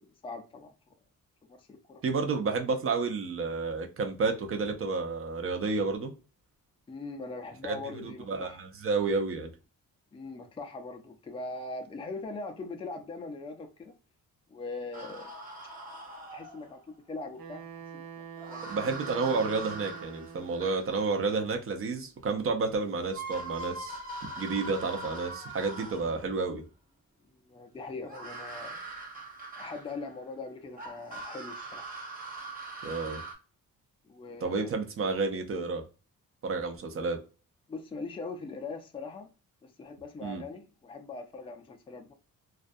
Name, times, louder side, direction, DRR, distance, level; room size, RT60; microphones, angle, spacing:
voice 1, 0.2-0.7 1.6-2.0 6.9-8.6 10.1-13.9 14.5-15.3 16.3-16.8 17.1-18.6 27.2-28.8 29.6-31.9 34.0-34.7 37.7-39.3 39.6-42.1, left 3 dB, 15° left, 0.4 m, -41 dB
voice 2, 2.0-6.1 7.6-9.5 18.6-24.0 24.4-26.6 32.8-33.2 34.4-35.8 36.4-37.2 40.2-40.4, right 4 dB, 40° right, 0.6 m, -30 dB
sound 1, 14.9-16.8 18.4-21.4 22.7-22.8 23.1-26.3 28.0-30.2 30.8-33.3, right 2 dB, 25° right, 1.0 m, -42 dB
Wind instrument woodwind instrument, 17.4-20.8, right 7 dB, 75° right, 0.8 m, -45 dB
2.4 x 2.2 x 2.5 m
cardioid pair, 110°, 35 cm